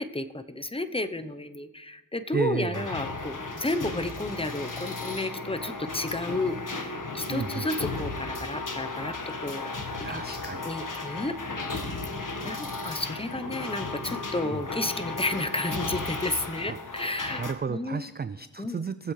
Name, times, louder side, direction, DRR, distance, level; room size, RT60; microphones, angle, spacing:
voice 1, 0.0-9.7 10.1-10.2 10.6-11.7 12.4-17.4 17.7-18.1 18.6-18.8, left 2 dB, 10° left, 10 dB, 0.7 m, -32 dB
voice 2, 2.3-2.9 7.3-7.7 10.0-10.7 14.4-14.6 16.7-16.8 17.4-19.1, right 6 dB, 25° right, 13 dB, 0.3 m, -32 dB
sound 1, 2.7-17.5, left 3 dB, 45° left, 1.5 m, -35 dB
21.5 x 7.7 x 3.2 m, 1.3 s
cardioid pair, 55°, 45 cm